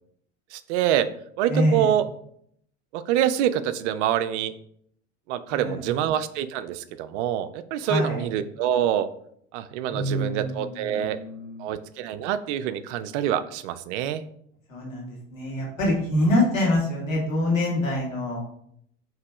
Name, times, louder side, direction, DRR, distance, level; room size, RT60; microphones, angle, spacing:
voice 1, 0.5-1.1 1.4-2.1 2.9-4.5 5.3-9.1 9.5-11.2 11.6-14.2, right 10 dB, 65° right, 13 dB, 0.5 m, -26 dB
voice 2, 1.5-1.9 5.5-5.8 7.8-8.2 9.9-11.7 14.7-18.4, left 1 dB, 85° left, -3 dB, 1.8 m, -25 dB
4.7 x 3.1 x 3.5 m, 0.67 s
hypercardioid pair, 80°, 38 cm